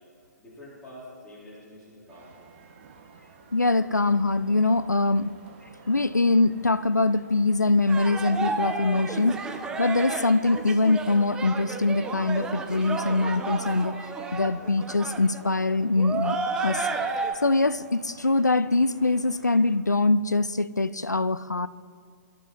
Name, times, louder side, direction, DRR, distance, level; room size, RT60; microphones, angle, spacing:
voice 1, 0.4-2.5, left 1 dB, 10° left, 4.1 m, -47 dB
sound 1, 2.1-19.8, right 5 dB, 40° right, 1.8 m, -51 dB
voice 2, 3.5-5.3 5.9-13.9 14.3-16.9 17.4-21.7, left 3 dB, 85° left, 0.6 m, -23 dB
sound 2, 7.9-17.3, right 3 dB, 10° right, 0.9 m, -32 dB
25.0 x 12.0 x 4.2 m
figure-of-eight pair, 130°, 9 cm